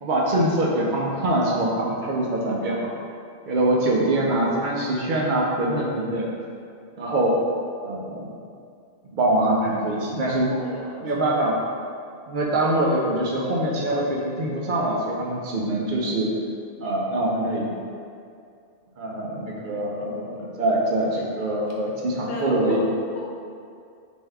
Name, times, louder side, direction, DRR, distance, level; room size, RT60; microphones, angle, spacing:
voice 1, 0.0-2.9 3.5-6.3 7.0-7.4 7.8-8.3 9.1-10.5 11.0-11.6 12.3-16.3 16.8-17.7 19.0-22.9, right 1 dB, 60° right, -3 dB, 0.6 m, -24 dB
voice 2, 10.3-11.2 19.5-19.8 22.3-22.9 23.1-23.3, left 3 dB, 70° left, -4 dB, 0.9 m, -34 dB
3.3 x 2.6 x 3.4 m, 2.3 s
omnidirectional pair, 1.1 m